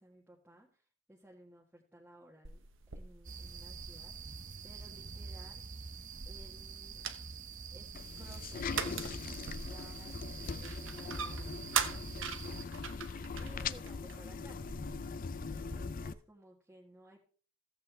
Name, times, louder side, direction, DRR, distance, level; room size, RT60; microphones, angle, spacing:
voice 1, 0.0-2.7 2.9-5.6 6.3-7.3 7.7-7.9 8.2-12.9 13.4-14.6 15.5-17.2, right 1 dB, 5° right, -4 dB, 1.7 m, -58 dB
sound 1, 2.4-15.8, right 7 dB, 65° right, 1.0 m, -43 dB
sound 2, 3.2-12.6, right 4 dB, 40° right, 0.7 m, -46 dB
sound 3, 7.9-16.1, left 5 dB, 45° left, 0.4 m, -41 dB
15.0 x 7.9 x 3.4 m, 0.40 s
head